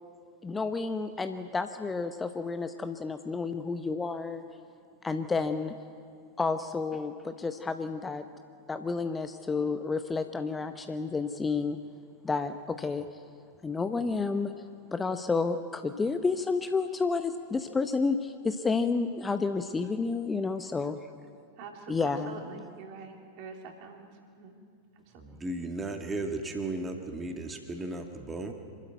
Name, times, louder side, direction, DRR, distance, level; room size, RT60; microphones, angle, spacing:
voice 1, 0.4-4.4 5.0-5.8 6.4-8.2 8.7-11.8 12.2-13.1 13.6-14.5 14.9-21.0 21.9-22.4, left 4 dB, 15° left, 9 dB, 0.8 m, -30 dB
voice 2, 21.6-24.1 24.4-24.6 25.3-25.4, right 4 dB, 45° right, 2 dB, 3.2 m, -45 dB
voice 3, 25.2-28.5, right 2 dB, 15° right, 4 dB, 2.0 m, -35 dB
25.5 x 12.5 x 9.2 m, 2.3 s
figure-of-eight pair, 90°, 0 cm